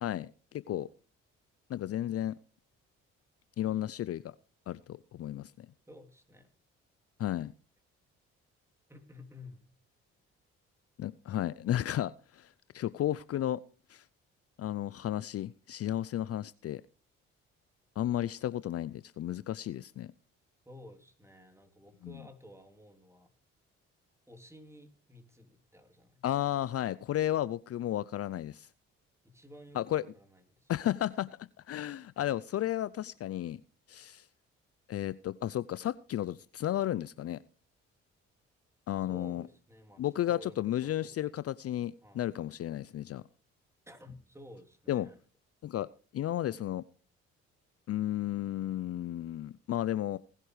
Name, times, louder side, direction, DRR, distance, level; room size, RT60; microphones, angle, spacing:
voice 1, 0.0-0.9 1.7-2.4 3.6-4.3 4.7-5.7 7.2-7.5 11.0-13.6 13.9-14.0 14.6-16.8 18.0-20.1 22.0-22.2 26.2-28.7 29.7-30.0 30.7-33.6 33.9-34.3 34.9-37.4 38.9-39.4 40.0-43.2 44.9-45.1 45.6-45.9 46.1-46.8 47.9-50.2, left 12 dB, 50° left, 0.5 m, -33 dB
voice 2, 5.9-6.5 8.9-9.6 20.6-23.3 24.3-26.2 29.2-30.7 39.0-41.4 42.0-42.2 42.9-43.0 43.9-45.2, left 1 dB, 10° right, 3.2 m, -53 dB
19.5 x 11.0 x 3.3 m
supercardioid pair, 55°, 30 cm